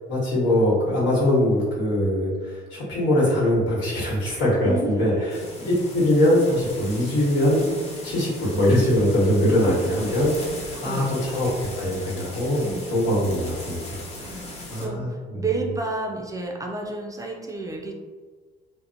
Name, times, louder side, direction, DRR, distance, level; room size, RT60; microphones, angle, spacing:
voice 1, 0.1-7.6 8.0-10.3 10.6-11.5 11.8-12.6 12.9-14.0 14.4-15.4, left 1 dB, 80° left, -6 dB, 1.2 m, -22 dB
voice 2, 4.6-5.3 9.5-10.0 10.7-11.3 12.6-12.9 14.2-17.9, right 3 dB, 20° right, 0 dB, 0.3 m, -32 dB
sound 1, 5.3-14.9, left 1 dB, 35° left, 0.8 m, -38 dB
2.8 x 2.0 x 2.5 m, 1.4 s
cardioid pair, 100°, 19 cm